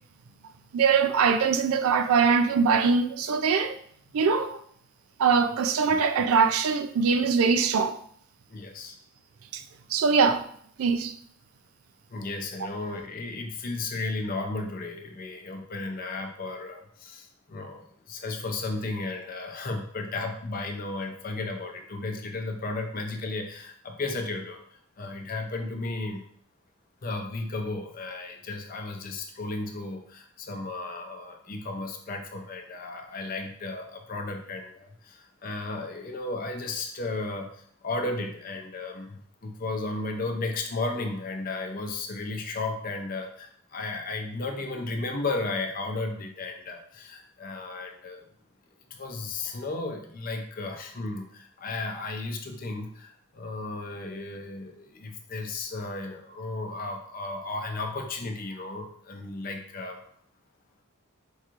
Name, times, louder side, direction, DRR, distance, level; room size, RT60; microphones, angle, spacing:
voice 1, 0.7-3.8 4.1-4.6 5.2-8.0 9.5-9.6 9.9-10.4 10.8-11.1, right 5 dB, 80° right, 0.4 m, -22 dB
voice 2, 8.5-9.0 12.1-24.6 25.0-26.2 27.0-48.3 48.9-60.0, left 3 dB, 40° left, 0.5 m, -34 dB
4.6 x 2.9 x 2.4 m
head